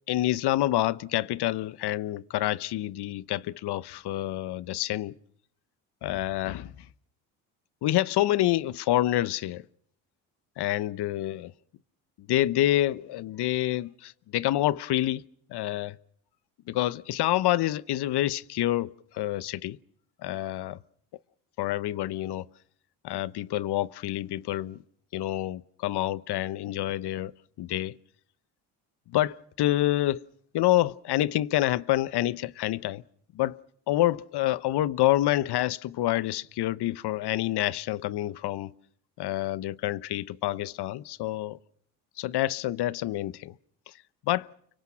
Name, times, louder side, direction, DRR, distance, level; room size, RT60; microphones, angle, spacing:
voice 1, 0.1-5.2 6.0-6.7 7.8-9.6 10.6-11.5 12.3-15.2 15.5-16.0 16.7-19.8 20.2-20.8 21.6-22.4 23.0-24.8 25.1-27.3 27.6-27.9 29.1-30.2 30.5-33.0 33.3-33.6 33.9-38.7 39.2-41.6 42.2-43.5 44.3-44.5, left 14 dB, 60° left, 1.0 m, -27 dB
29.5 x 24.5 x 6.3 m
supercardioid pair, 65°, 45 cm